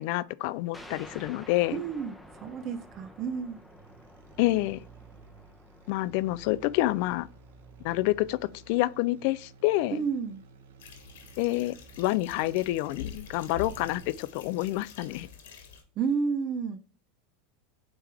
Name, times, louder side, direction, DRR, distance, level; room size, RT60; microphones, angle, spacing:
voice 1, 0.0-1.8 4.4-4.8 5.9-7.3 7.8-8.4 8.7-10.0 11.4-15.3, left 17 dB, 60° left, 0.4 m, -28 dB
sound 1, 0.7-9.9, left 1 dB, 5° left, 0.9 m, -52 dB
voice 2, 1.7-3.6 9.9-10.4 16.0-16.8, right 5 dB, 40° right, 0.7 m, -31 dB
sound 2, 2.2-14.3, right 5 dB, 85° right, 1.1 m, -54 dB
sound 3, 10.8-15.8, left 7 dB, 85° left, 1.7 m, -45 dB
8.8 x 3.4 x 3.4 m
supercardioid pair, 125°, 0 cm